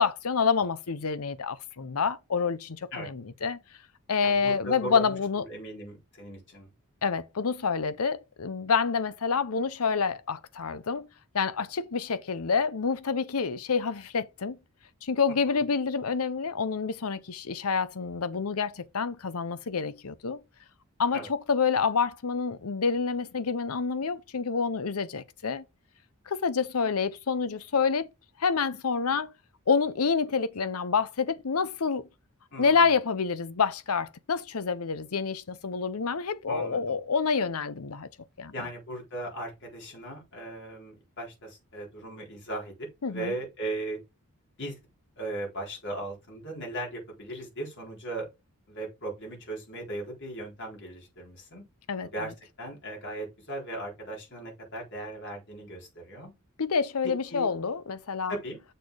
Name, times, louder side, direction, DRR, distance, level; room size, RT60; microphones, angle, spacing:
voice 1, 0.0-3.6 4.1-5.4 7.0-11.1 11.3-14.6 15.0-20.4 21.0-25.6 26.3-28.1 28.4-29.3 29.7-32.0 32.6-38.1 38.4-38.5 43.0-43.3 51.9-52.3 56.6-58.3, left 5 dB, 80° left, 0.7 m, -28 dB
voice 2, 4.2-6.7 15.5-15.6 21.1-21.3 32.5-32.9 36.5-37.0 38.5-44.0 44.6-44.8 45.2-48.3 48.7-51.6 52.1-56.3 57.0-57.5 58.3-58.6, right 1 dB, 55° left, 4.0 m, -38 dB
6.6 x 4.1 x 4.9 m
head